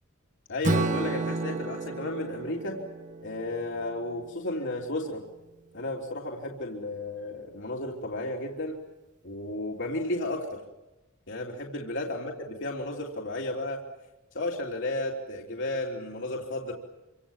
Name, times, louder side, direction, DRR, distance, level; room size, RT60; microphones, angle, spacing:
voice 1, 0.5-2.8 3.2-5.2 5.7-8.8 9.2-10.6 11.3-13.8 14.3-16.7, left 1 dB, 60° left, -1 dB, 3.4 m, -33 dB
Strum, 0.6-4.8, right 2 dB, 40° right, 1.7 m, -32 dB
28.0 x 26.0 x 7.4 m, 1.0 s
head